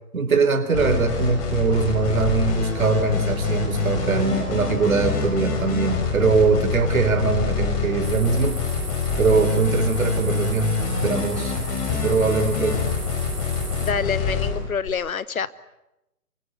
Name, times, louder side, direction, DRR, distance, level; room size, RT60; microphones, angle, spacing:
voice 1, 0.1-8.6 9.2-11.6 12.0-12.9, right 4 dB, 60° right, 8 dB, 4.2 m, -22 dB
sound 1, 0.7-14.9, left 5 dB, 25° left, 5.0 m, -25 dB
sound 2, 8.0-13.9, right 3 dB, 90° right, 3.3 m, -38 dB
voice 2, 13.8-15.5, left 6 dB, 60° left, 17 dB, 1.2 m, -26 dB
27.5 x 24.0 x 8.2 m, 0.91 s
figure-of-eight pair, 145°, 47 cm